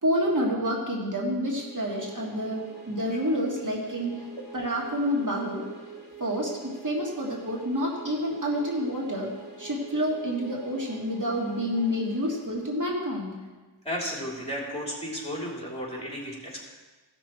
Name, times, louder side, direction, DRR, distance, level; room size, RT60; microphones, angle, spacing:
voice 1, 0.0-4.2 4.5-5.7 6.2-9.3 9.6-13.4, equal, 50° right, -2 dB, 1.9 m, -28 dB
sound 1, 1.3-13.2, right 4 dB, 25° right, 2.6 m, -46 dB
voice 2, 13.8-16.6, equal, 15° left, -3 dB, 3.1 m, -33 dB
16.0 x 6.1 x 4.4 m, 1.3 s
wide cardioid pair, 75°, 40 cm